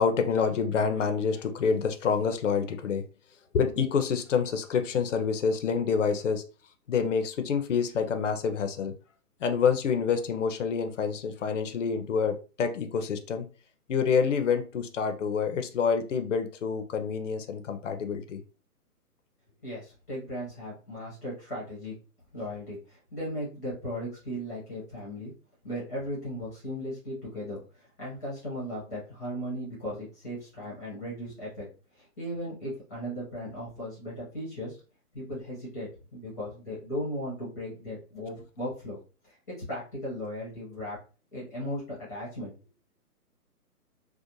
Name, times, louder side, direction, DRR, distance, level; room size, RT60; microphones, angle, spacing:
voice 1, 0.0-3.0 3.5-6.4 6.9-8.9 9.4-13.4 13.9-18.4, left 6 dB, 55° left, 7 dB, 0.5 m, -27 dB
voice 2, 19.6-21.9 22.3-25.3 25.6-31.7 32.0-34.8 35.1-39.0 39.2-39.3 39.7-41.0 41.3-41.8 42.1-42.5, equal, 10° left, -8 dB, 0.6 m, -37 dB
2.6 x 2.1 x 2.9 m, 0.35 s
hypercardioid pair, 165°, 46 cm